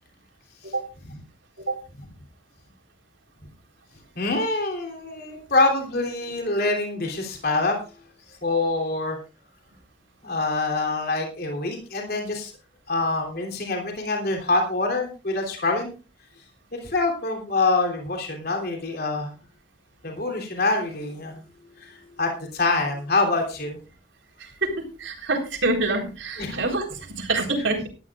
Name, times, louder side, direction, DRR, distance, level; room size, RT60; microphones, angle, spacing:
voice 1, 4.1-7.8 8.4-9.2 10.2-12.5 12.9-15.9 16.7-19.3 20.0-21.4 21.8-23.8 26.4-26.6, left 3 dB, 50° left, 2 dB, 3.2 m, -25 dB
voice 2, 24.4-24.7 25.0-27.9, right 2 dB, 75° right, 2 dB, 4.0 m, -26 dB
19.0 x 13.0 x 2.4 m, 0.33 s
head